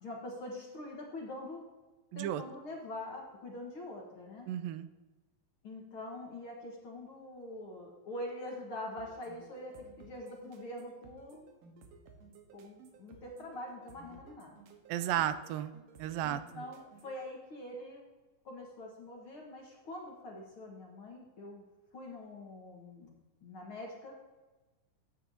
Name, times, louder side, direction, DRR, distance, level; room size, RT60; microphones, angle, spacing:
voice 1, 0.0-1.6 2.2-4.5 5.6-11.5 12.5-14.5 16.2-18.0 18.4-21.6 21.9-23.1 23.4-24.2, left 1 dB, 50° left, -1 dB, 1.8 m, -44 dB
voice 2, 2.1-2.4 4.5-4.9 14.9-15.7 16.0-16.6, right 11 dB, 90° right, 12 dB, 2.3 m, -34 dB
sound 1, 9.0-17.2, right 4 dB, 75° right, 2.8 m, -57 dB
13.5 x 8.9 x 2.7 m, 1.2 s
omnidirectional pair, 4.0 m